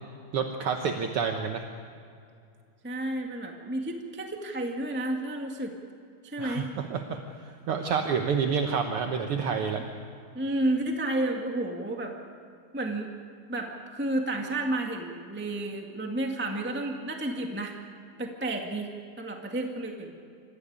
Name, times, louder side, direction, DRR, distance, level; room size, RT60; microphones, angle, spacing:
voice 1, 0.3-1.6 6.4-9.8, right 6 dB, 60° right, 4 dB, 1.5 m, -29 dB
voice 2, 2.8-5.7 6.2-6.6 10.3-12.1 12.7-13.1 13.5-17.7 18.2-18.9 19.2-20.1, right 1 dB, 5° right, 2 dB, 1.0 m, -31 dB
26.5 x 15.0 x 8.7 m, 2.4 s
omnidirectional pair, 3.7 m